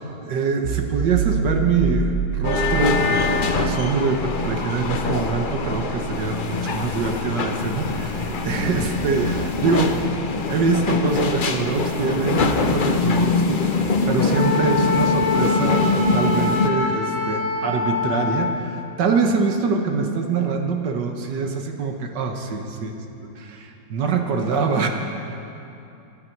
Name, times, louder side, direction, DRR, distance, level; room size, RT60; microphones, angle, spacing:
voice 1, 0.0-10.2 10.5-24.9, right 4 dB, 70° right, 4 dB, 1.7 m, -24 dB
sound 1, 0.6-12.1, right 5 dB, 55° right, 1.0 m, -31 dB
sound 2, 2.4-16.7, left 4 dB, 60° left, 0.5 m, -23 dB
Wind instrument woodwind instrument, 14.3-18.6, left 3 dB, 10° right, 1.2 m, -25 dB
23.5 x 10.0 x 4.6 m, 2.8 s
omnidirectional pair, 2.0 m